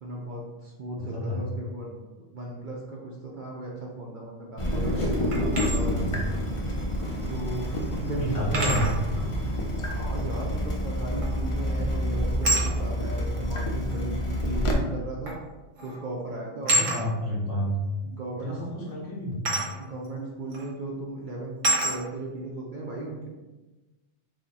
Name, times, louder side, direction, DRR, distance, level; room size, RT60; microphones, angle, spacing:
voice 1, 0.0-1.9 2.3-6.2 7.3-8.6 9.8-15.4 15.8-16.8 18.0-18.6 19.8-21.5 21.8-23.2, right 2 dB, 55° right, -3 dB, 0.6 m, -36 dB
voice 2, 1.0-1.4 5.8-6.1 8.1-8.8 16.7-17.7 18.4-19.4, left 1 dB, 75° left, -4 dB, 1.6 m, -30 dB
Water tap faucet / Drip, 4.6-14.7, equal, 40° left, 0.4 m, -28 dB
sound 1, 4.6-9.6, equal, 5° left, 0.9 m, -36 dB
sound 2, 5.3-5.8 7.3-7.4 8.5-9.0 11.2-11.5 12.4-12.7 13.9-14.0 15.3-15.5 15.8-16.0 16.7-17.0 19.4-19.7 20.5-20.7 21.6-22.0, right 1 dB, 80° right, 1.3 m, -26 dB
4.8 x 2.1 x 4.1 m, 1.1 s
omnidirectional pair, 1.3 m